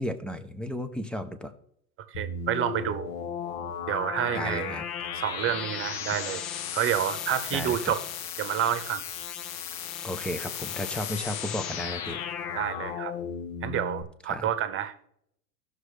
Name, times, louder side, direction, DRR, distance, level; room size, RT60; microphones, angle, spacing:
voice 1, 0.0-1.5 4.3-4.9 7.5-7.9 10.0-12.2 14.3-14.5, left 1 dB, ahead, 9 dB, 0.4 m, -34 dB
voice 2, 2.0-3.1 3.9-4.8 5.1-6.4 6.7-8.0 8.4-9.0 12.5-13.1 13.6-15.1, right 10 dB, 25° right, 11 dB, 0.9 m, -29 dB
sound 1, 2.1-14.0, left 7 dB, 60° left, 1.2 m, -35 dB
15.0 x 6.4 x 3.2 m, 0.71 s
hypercardioid pair, 115°, 47 cm